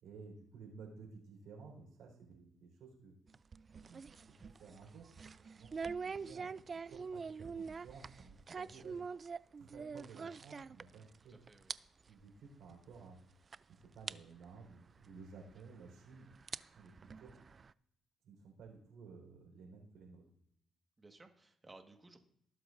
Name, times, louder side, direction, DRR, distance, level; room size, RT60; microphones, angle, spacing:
voice 1, 0.0-3.1 3.7-4.1 4.6-5.7 6.0-6.5 6.9-9.0 9.6-11.4 12.1-13.2 13.9-16.3 16.8-17.3 18.2-20.2, right 4 dB, 80° right, 0 dB, 4.2 m, -55 dB
sound 1, 3.3-11.2 11.5-11.8 12.1-12.2 12.9-13.0 13.5-13.6 14.1-14.2 15.5-15.6 16.3-17.7, right 5 dB, 40° right, 0.3 m, -45 dB
voice 2, 11.3-11.7 21.0-22.2, right 2 dB, 20° right, 5 dB, 1.5 m, -58 dB
19.5 x 7.8 x 2.6 m, 0.74 s
cardioid pair, 90°, 0 cm